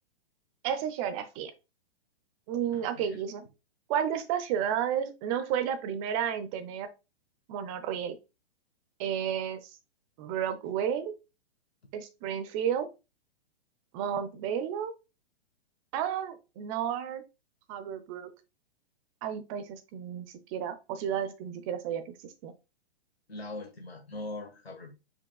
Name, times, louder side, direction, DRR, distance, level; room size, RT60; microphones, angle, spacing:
voice 1, 0.6-1.5 2.5-3.4 3.9-6.9 7.5-8.1 9.0-9.6 10.2-11.1 11.9-12.9 13.9-14.9 15.9-17.2 17.7-18.3 19.2-22.5, right 9 dB, 35° right, 0.7 m, -32 dB
voice 2, 2.7-3.2 23.3-24.9, left 2 dB, 90° left, 1.5 m, -41 dB
4.8 x 4.4 x 2.3 m
figure-of-eight pair, 115°, 31 cm